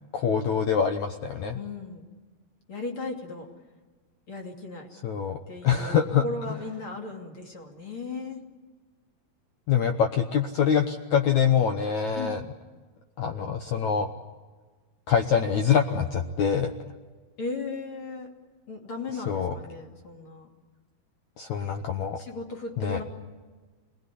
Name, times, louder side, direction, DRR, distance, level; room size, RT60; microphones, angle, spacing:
voice 1, 0.1-1.6 5.0-5.4 5.6-6.6 9.7-12.4 13.2-14.1 15.1-16.7 19.3-19.5 21.4-22.2 22.8-23.0, left 7 dB, 85° left, 5 dB, 1.6 m, -25 dB
voice 2, 1.5-2.1 2.7-3.5 4.3-4.9 5.5-8.4 12.1-12.4 17.4-18.3 18.7-20.5 22.2-23.0, left 3 dB, 35° left, 1 dB, 3.1 m, -36 dB
27.0 x 20.0 x 10.0 m, 1.4 s
omnidirectional pair, 4.8 m